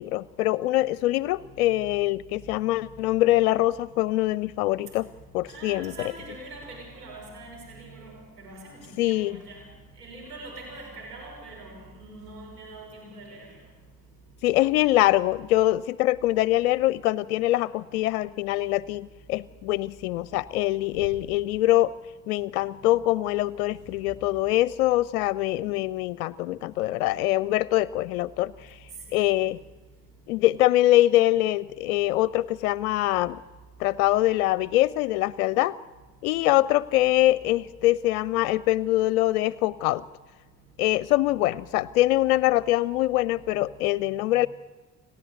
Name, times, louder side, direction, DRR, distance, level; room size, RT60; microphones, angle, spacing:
voice 1, 0.0-5.1 5.3-5.9 9.0-9.4 14.4-21.9 22.3-28.8 29.1-29.6 30.3-33.4 33.8-35.8 36.2-40.0 40.8-44.5, left 16 dB, 65° left, 22 dB, 0.5 m, -24 dB
voice 2, 5.5-9.6 10.0-13.5 29.1-29.2, right 2 dB, 80° right, -1 dB, 6.2 m, -43 dB
29.0 x 12.0 x 8.2 m, 1.3 s
figure-of-eight pair, 45°, 46 cm